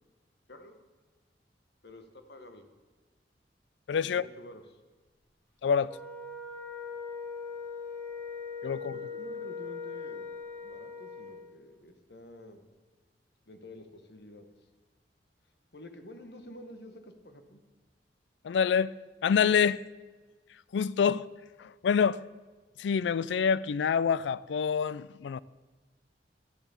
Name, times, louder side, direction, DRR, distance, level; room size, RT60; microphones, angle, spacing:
voice 1, 1.8-2.7 4.0-4.8 8.9-10.3 10.6-12.6 13.5-14.5 15.7-17.6, left 1 dB, 65° left, 1.2 m, -49 dB
voice 2, 3.9-4.2 5.6-6.0 8.6-8.9 18.4-18.9 19.2-19.8 20.7-21.3 21.6-22.2 22.8-25.4, left 6 dB, 85° left, 0.4 m, -26 dB
Wind instrument woodwind instrument, 5.8-11.5, left 5 dB, 10° left, 1.5 m, -40 dB
12.5 x 7.1 x 7.0 m
head